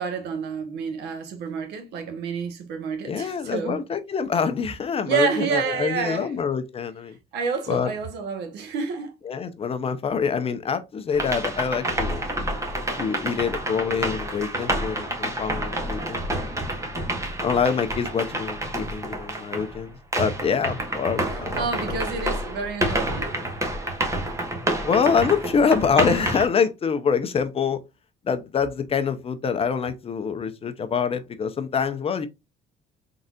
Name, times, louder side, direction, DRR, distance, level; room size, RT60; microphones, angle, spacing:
voice 1, 0.0-3.8 5.1-6.3 7.3-9.1 21.3-23.4, right 5 dB, 80° right, 1.4 m, -29 dB
voice 2, 3.0-7.2 7.7-7.9 9.2-12.2 13.0-16.6 17.4-22.0 24.8-27.8 28.2-32.3, left 6 dB, 35° left, 0.7 m, -25 dB
sound 1, 11.1-19.8 20.1-26.5, right 1 dB, 15° right, 1.2 m, -28 dB
3.9 x 3.9 x 2.4 m
cardioid pair, 110°, 17 cm